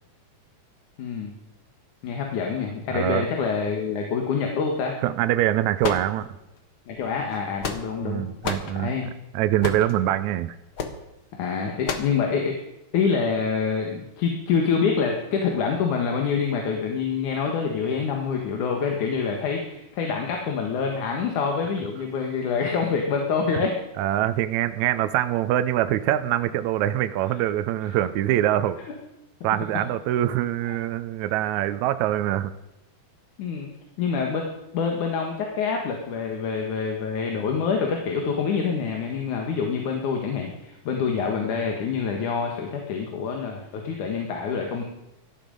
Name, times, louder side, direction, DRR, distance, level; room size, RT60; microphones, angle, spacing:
voice 1, 1.0-1.3 2.0-5.0 6.9-8.2 8.8-9.1 11.3-12.7 12.9-23.8 28.8-28.9 30.6-30.8 33.4-33.7 34.0-44.8, left 5 dB, 70° left, 2 dB, 3.0 m, -26 dB
voice 2, 2.9-3.3 5.0-6.3 8.0-8.9 9.3-10.6 23.5-23.7 24.0-28.8 29.4-32.5, right 13 dB, 75° right, 11 dB, 1.9 m, -24 dB
sound 1, 5.8-6.6 7.3-8.1 8.4-8.7 9.6-9.9 10.8-11.0 11.8-12.2, left 5 dB, 50° left, 1.8 m, -30 dB
17.5 x 13.5 x 5.3 m, 0.94 s
omnidirectional pair, 3.7 m